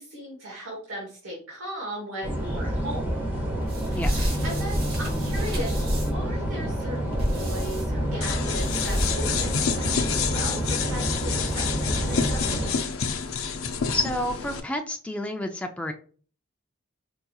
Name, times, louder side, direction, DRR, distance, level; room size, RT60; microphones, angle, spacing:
voice 1, 0.0-3.1 3.9-5.7 6.1-12.7, equal, 90° right, -2 dB, 1.1 m, -37 dB
sound 1, 2.2-12.7, equal, 10° right, 0.8 m, -28 dB
sound 2, 3.6-6.3 7.1-7.8 8.5-9.3, equal, 45° right, 1.2 m, -30 dB
sound 3, 8.2-14.6, left 6 dB, 85° left, 0.5 m, -28 dB
voice 2, 13.9-15.9, left 1 dB, 5° left, 4 dB, 0.3 m, -29 dB
4.7 x 2.8 x 2.3 m, 0.42 s
head